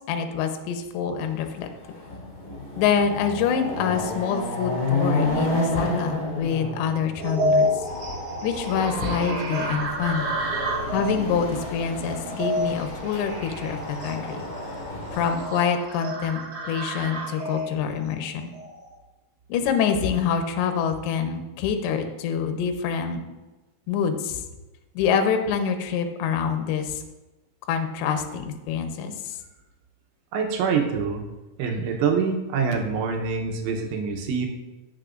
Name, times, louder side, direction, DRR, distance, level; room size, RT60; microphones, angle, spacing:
voice 1, 0.0-1.7 2.8-7.7 8.4-10.3 10.9-14.5 15.1-16.4 16.7-18.5 19.5-23.2 23.9-24.4 25.0-27.0 27.7-29.4, left 7 dB, 75° left, 6 dB, 2.8 m, -26 dB
Chatter / Car passing by / Motorcycle, 1.4-1.5 1.9-15.4, left 2 dB, 40° left, 2.0 m, -31 dB
sound 1, 7.2-18.9, equal, 60° right, 3.9 m, -30 dB
voice 2, 30.3-31.2 31.6-34.5, right 5 dB, 75° right, 2 dB, 3.2 m, -25 dB
16.0 x 6.8 x 2.5 m, 1.1 s
omnidirectional pair, 5.8 m